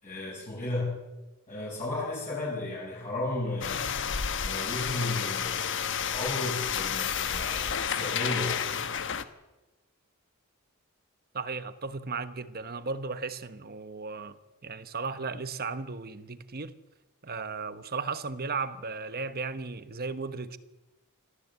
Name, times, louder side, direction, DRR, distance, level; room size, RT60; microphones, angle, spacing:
voice 1, 0.0-1.0 1.5-3.8 4.4-8.6, left 2 dB, 35° left, 6.4 m, -34 dB
sound 1, 3.6-9.2, left 7 dB, 55° left, 1.1 m, -31 dB
voice 2, 11.3-14.4 14.6-16.8 17.2-20.6, right 4 dB, 45° right, 1.1 m, -35 dB
26.0 x 15.0 x 8.2 m
head